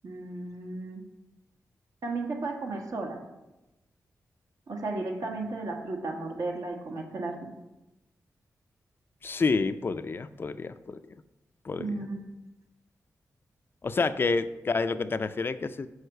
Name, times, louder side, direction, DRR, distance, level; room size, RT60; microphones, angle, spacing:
voice 1, 0.0-1.0 2.0-3.2 4.7-7.5 11.8-12.3, right 3 dB, 65° right, 2 dB, 1.4 m, -34 dB
voice 2, 9.2-11.0 11.6-12.1 13.8-15.9, left 4 dB, 35° left, 12 dB, 0.4 m, -29 dB
6.4 x 4.9 x 6.6 m, 1.0 s
wide cardioid pair, 125°, 6 cm